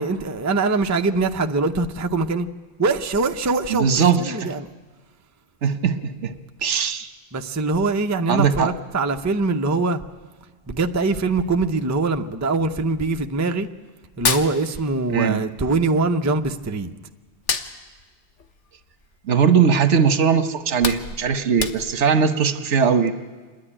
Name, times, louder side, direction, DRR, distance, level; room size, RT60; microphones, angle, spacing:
voice 1, 0.0-2.5 2.8-4.7 7.3-10.0 10.7-13.7 14.2-16.9, right 3 dB, 20° right, 6 dB, 0.5 m, -23 dB
voice 2, 3.7-4.5 5.6-6.3 6.6-7.1 8.3-8.7 15.1-15.4 19.3-23.1, right 6 dB, 80° right, 10 dB, 1.3 m, -19 dB
Hands, 14.0-15.3 15.6-16.9 17.3-19.6 20.0-20.2 20.5-22.2, left 5 dB, 85° left, 1.3 m, -28 dB
26.5 x 10.5 x 9.9 m, 1.4 s
omnidirectional pair, 1.2 m